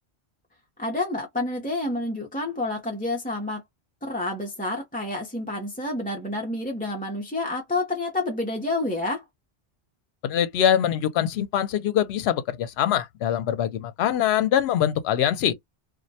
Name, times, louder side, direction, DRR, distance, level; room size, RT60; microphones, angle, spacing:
voice 1, 0.8-3.6 4.0-9.2, left 2 dB, 10° left, 0.5 m, -29 dB
voice 2, 10.2-15.5, left 10 dB, 75° left, 0.8 m, -23 dB
2.5 x 2.1 x 2.6 m
omnidirectional pair, 1.1 m